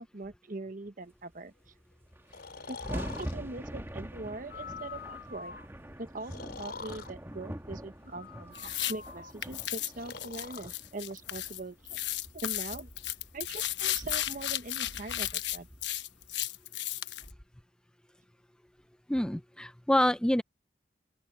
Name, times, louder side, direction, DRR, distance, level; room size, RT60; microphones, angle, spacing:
voice 1, 0.0-1.5 2.7-5.5 6.0-12.0 12.3-12.9 13.3-15.7, right 2 dB, 50° right, 1.1 m, -42 dB
sound 1, 1.7-1.8 1.9-16.3, equal, 15° right, 1.5 m, -45 dB
Breathing, 2.3-3.3 4.4-5.7 6.2-7.1 8.1-9.3 10.0-10.7, left 5 dB, 60° left, 5.8 m, -44 dB
sound 2, 8.5-8.9 9.4-11.6 11.9-17.3, left 13 dB, 80° left, 1.0 m, -34 dB
voice 2, 19.1-20.4, left 1 dB, 5° left, 0.5 m, -26 dB
open air
head